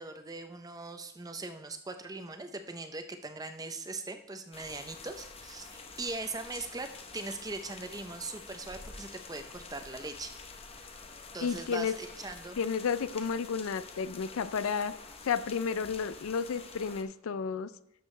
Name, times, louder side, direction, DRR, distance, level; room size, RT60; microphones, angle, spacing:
voice 1, 0.0-6.9 7.1-10.3 11.3-12.6, right 3 dB, 15° right, 7 dB, 0.6 m, -40 dB
sound 1, 4.5-17.0, left 4 dB, 30° left, 0.7 m, -48 dB
voice 2, 11.4-11.9 12.6-14.9 15.2-17.7, left 6 dB, 80° left, 14 dB, 0.4 m, -32 dB
12.5 x 6.7 x 3.2 m, 0.84 s
head